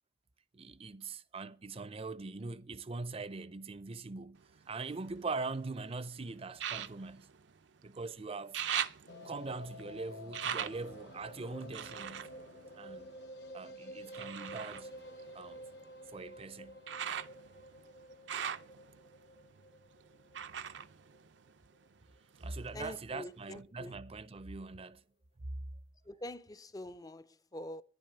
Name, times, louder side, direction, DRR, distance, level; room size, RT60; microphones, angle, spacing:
voice 1, 0.5-7.3 7.8-8.6 9.2-12.3 12.7-13.1 13.5-14.9 15.3-15.6 16.1-16.8 22.4-25.0, right 3 dB, 35° right, 0.5 m, -42 dB
sound 1, 4.4-5.7 6.5-8.1 8.3-13.5 14.1-22.0 22.3-23.1 23.6-23.7, right 9 dB, 80° right, 0.6 m, -42 dB
sound 2, 9.1-21.2 21.5-21.6 21.8-21.9 22.2-22.3, equal, 65° left, 1.4 m, -51 dB
voice 2, 22.7-24.0 26.1-27.8, left 1 dB, 20° left, 0.5 m, -45 dB
10.5 x 10.5 x 6.7 m
head